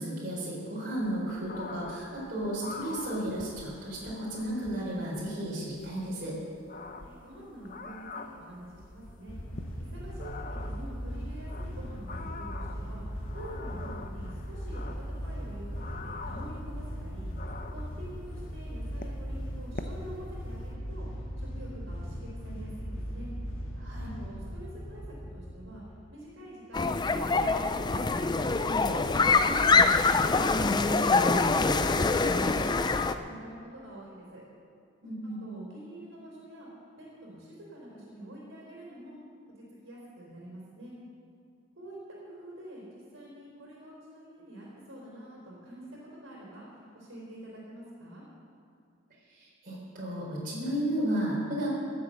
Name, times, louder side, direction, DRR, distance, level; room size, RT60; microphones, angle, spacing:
voice 1, 0.0-6.4 23.8-24.1 35.0-35.4 49.4-51.7, right 1 dB, 45° right, -6 dB, 4.3 m, -33 dB
sound 1, 1.0-20.7, left 3 dB, 40° left, 0.8 m, -46 dB
voice 2, 7.0-9.4 9.8-17.3 17.7-23.3 24.2-28.4 28.8-31.3 31.6-34.4 35.4-36.7 37.0-39.2 39.6-40.9 41.8-42.0 42.2-48.2, right 1 dB, 70° right, -4 dB, 4.0 m, -46 dB
sound 2, 9.3-25.8, equal, 90° left, 2.1 m, -38 dB
sound 3, 26.7-33.1, left 3 dB, 20° left, 0.4 m, -24 dB
15.5 x 8.0 x 7.7 m, 2.4 s
head